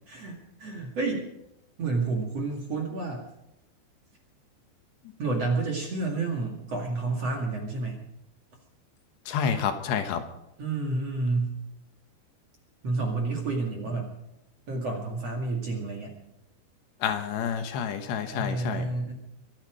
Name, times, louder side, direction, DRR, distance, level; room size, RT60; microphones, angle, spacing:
voice 1, 0.1-1.3 1.8-3.3 5.2-8.0 10.6-11.6 12.8-14.1 14.7-16.1 18.3-19.1, right 3 dB, 45° right, 1 dB, 2.6 m, -30 dB
voice 2, 9.3-10.2 17.0-18.9, left 7 dB, 75° left, 7 dB, 3.3 m, -29 dB
24.5 x 9.8 x 5.1 m, 0.84 s
omnidirectional pair, 5.2 m